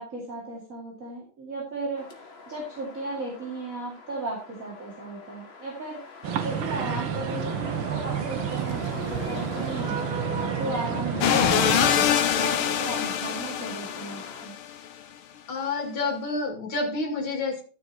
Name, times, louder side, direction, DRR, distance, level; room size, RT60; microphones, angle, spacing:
voice 1, 0.0-6.0 6.4-10.0 10.4-12.1 12.4-14.5, right 2 dB, 40° right, -4 dB, 3.0 m, -36 dB
sound 1, 2.0-14.5, left 3 dB, 35° left, 1.5 m, -43 dB
sound 2, 6.2-11.9, right 7 dB, 85° right, 2.1 m, -30 dB
sound 3, 11.2-14.7, left 9 dB, 85° left, 1.8 m, -24 dB
voice 2, 15.5-17.6, left 3 dB, 70° left, 1 dB, 3.0 m, -29 dB
12.5 x 6.4 x 4.2 m, 0.36 s
omnidirectional pair, 2.3 m